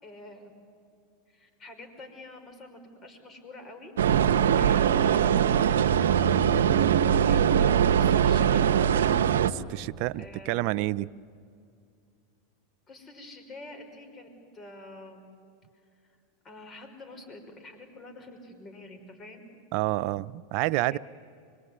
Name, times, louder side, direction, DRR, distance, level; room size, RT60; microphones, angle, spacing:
voice 1, 0.0-0.5 1.3-3.9 4.5-8.6 10.2-10.6 12.9-15.2 16.0-16.2 16.4-19.4 20.7-21.0, left 2 dB, 30° left, 5.5 m, -47 dB
sound 1, 4.0-9.5, right 9 dB, 85° right, 0.8 m, -22 dB
voice 2, 9.4-11.1 19.7-21.0, right 17 dB, 55° right, 0.6 m, -29 dB
25.5 x 22.0 x 9.7 m
hypercardioid pair, 110°, 0 cm